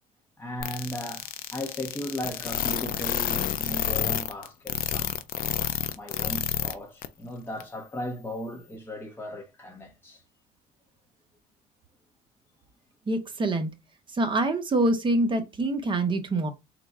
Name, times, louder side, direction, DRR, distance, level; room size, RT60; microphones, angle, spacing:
voice 1, 0.4-5.2 5.9-10.2, equal, 10° left, 0.9 m, -37 dB
sound 1, 0.6-6.7 7.0-7.1 7.6-7.7, left 11 dB, 60° left, 0.6 m, -29 dB
voice 2, 13.1-13.7 14.1-16.5, right 2 dB, 30° right, 1.0 m, -25 dB
3.9 x 2.3 x 4.4 m
cardioid pair, 110°, 17 cm